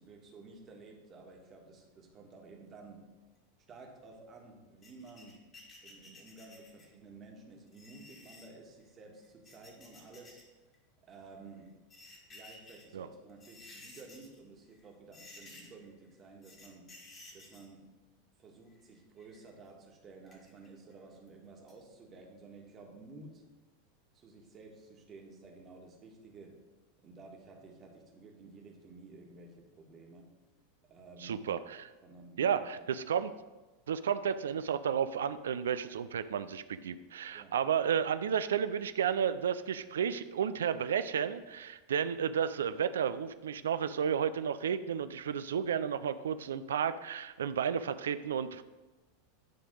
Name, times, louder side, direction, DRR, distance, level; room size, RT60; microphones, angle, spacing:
voice 1, 0.0-3.0 3.7-5.4 5.8-10.4 11.0-11.7 12.3-16.9 17.3-17.9 18.4-23.4 24.1-26.5 27.0-30.3 30.9-31.4 32.0-33.0 37.3-37.5, right 3 dB, 30° right, 1 dB, 1.5 m, -53 dB
sound 1, 4.8-7.0 7.7-8.5 9.2-10.4 10.7-10.8 11.7-12.9 13.3-14.4 14.7-14.9 15.1-15.9 16.4-17.7 18.7-19.5 20.3-20.9 21.3-21.4 21.7-21.8, left 2 dB, 30° left, 1.8 m, -54 dB
voice 2, 31.2-31.9 32.4-33.3 33.9-48.6, right 8 dB, 70° right, 13 dB, 0.3 m, -32 dB
9.8 x 3.4 x 5.0 m, 1.2 s
figure-of-eight pair, 90°, 0 cm